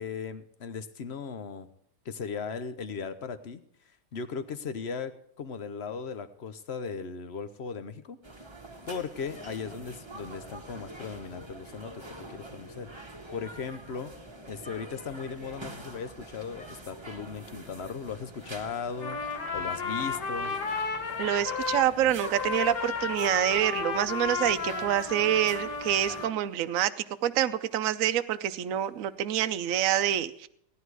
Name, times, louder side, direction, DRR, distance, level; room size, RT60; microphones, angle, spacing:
voice 1, 0.0-1.7 2.0-3.6 4.1-5.1 5.4-8.2 8.9-12.9 13.3-14.1 14.5-19.2 19.5-20.6, left 5 dB, 50° left, 11 dB, 0.9 m, -37 dB
sound 1, 8.2-26.3, right 1 dB, 15° right, 1.5 m, -46 dB
Trumpet, 19.0-21.9 22.2-26.3, left 5 dB, 65° left, 2.0 m, -33 dB
voice 2, 21.2-26.9 27.2-30.5, right 11 dB, 60° right, 10 dB, 0.9 m, -27 dB
17.0 x 11.0 x 4.8 m, 0.69 s
omnidirectional pair, 1.9 m